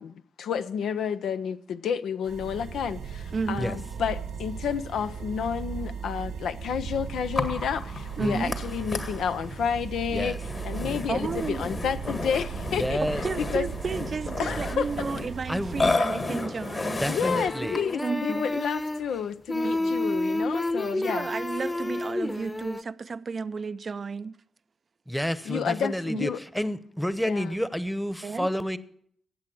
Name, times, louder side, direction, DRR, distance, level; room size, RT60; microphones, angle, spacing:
voice 1, 0.0-13.0 13.5-13.7 14.4-14.9 16.0-16.1 17.1-21.3 25.5-26.4 27.3-27.6, left 7 dB, 80° left, 0.5 m, -30 dB
sound 1, 2.2-15.9, right 6 dB, 90° right, 1.5 m, -37 dB
voice 2, 3.3-3.8 8.2-8.6 11.1-11.6 13.2-17.1 17.6-17.7 18.0-18.5 19.6-20.1 21.1-24.4 26.1-26.2 28.2-28.5, right 5 dB, 55° right, 0.4 m, -33 dB
Burping eructation, 7.4-18.1, left 3 dB, 45° left, 1.8 m, -33 dB
voice 3, 12.7-13.2 15.5-15.7 17.0-17.8 25.1-28.8, equal, 5° left, 1.0 m, -29 dB
sound 2, 16.4-16.8 17.1-19.2 19.5-22.8, left 1 dB, 25° left, 1.0 m, -30 dB
14.5 x 8.6 x 6.1 m
supercardioid pair, 40°, 0 cm